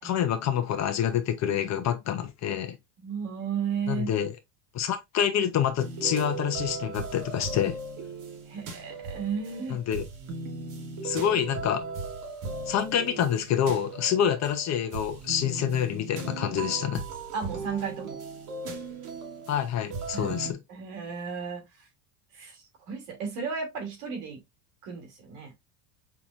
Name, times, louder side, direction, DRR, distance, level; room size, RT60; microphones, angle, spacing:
voice 1, 0.0-2.7 3.9-4.3 4.7-7.8 9.7-10.0 11.0-11.9 12.7-17.0 19.5-20.6, left 9 dB, 35° left, 0.8 m, -27 dB
voice 2, 3.0-4.1 8.5-9.8 17.3-18.2 20.1-20.4 20.7-21.6 22.3-24.4 24.8-25.5, right 6 dB, 80° right, 2.8 m, -34 dB
sound 1, 5.8-20.5, right 3 dB, 40° right, 1.5 m, -37 dB
5.8 x 3.0 x 2.5 m
supercardioid pair, 130°, 47 cm